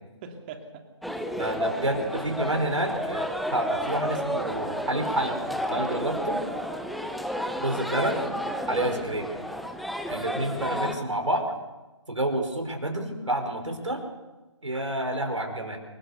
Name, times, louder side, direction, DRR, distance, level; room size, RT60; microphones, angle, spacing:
voice 1, 0.2-2.0 5.9-6.0, right 5 dB, 20° right, 5 dB, 2.8 m, -44 dB
sound 1, 1.0-10.9, equal, ahead, 0.8 m, -31 dB
voice 2, 1.4-5.4 5.7-6.4 7.6-8.2 8.7-9.3 10.1-11.5 12.1-14.0 14.6-15.8, right 1 dB, 80° right, 4 dB, 5.6 m, -29 dB
28.5 x 18.5 x 6.9 m, 1.2 s
figure-of-eight pair, 145°, 16 cm